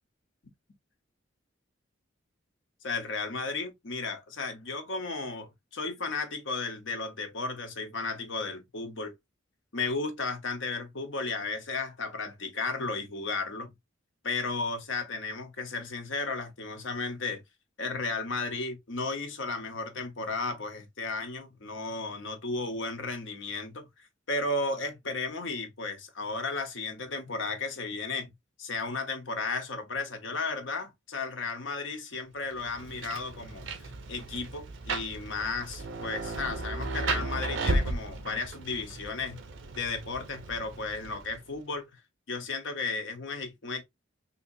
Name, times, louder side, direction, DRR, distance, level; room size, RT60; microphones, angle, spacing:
voice 1, 2.8-9.1 9.7-13.7 14.2-17.4 17.8-28.3 28.6-39.4 39.8-41.9 42.3-43.8, left 3 dB, 80° left, 1.0 m, -34 dB
Rain, 32.5-41.6, right 2 dB, 80° right, 0.7 m, -35 dB
3.6 x 2.8 x 2.6 m
head